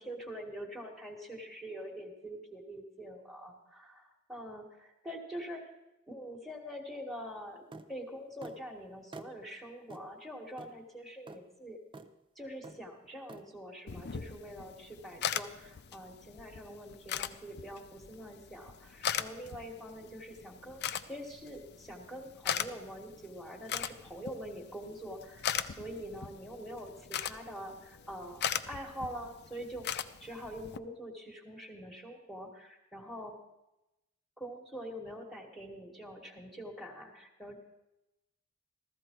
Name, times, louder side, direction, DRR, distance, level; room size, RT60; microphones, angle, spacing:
voice 1, 0.0-5.6 6.1-7.6 7.9-11.8 12.3-29.9 30.2-33.3 34.4-37.6, equal, ahead, 0 dB, 1.6 m, -45 dB
sound 1, 7.7-7.9 8.4-8.6 9.1-9.3 9.9-10.1 10.6-10.7 11.3-11.4 11.9-12.1 12.6-12.8 13.3-13.4, right 3 dB, 25° right, 0.6 m, -47 dB
sound 2, 13.9-30.8, left 8 dB, 55° left, 0.5 m, -40 dB
15.0 x 13.5 x 4.5 m, 0.94 s
head